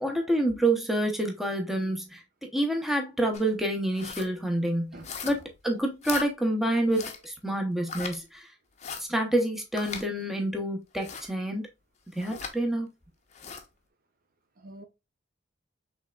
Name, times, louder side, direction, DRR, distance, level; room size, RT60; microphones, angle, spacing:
voice 1, 0.0-5.0 5.2-8.5 9.0-11.6 12.1-12.9, right 1 dB, ahead, 0.8 m, -28 dB
sound 1, 3.3-3.5 3.9-4.3 5.0-5.5 6.0-6.3 6.9-7.3 7.9-8.2 8.8-9.0 9.8-10.0 11.0-11.3 12.2-12.5 13.3-13.6, left 6 dB, 40° left, 0.7 m, -38 dB
voice 2, 4.9-5.4 14.6-14.8, right 1 dB, 50° right, 0.6 m, -46 dB
5.4 x 3.4 x 2.3 m
head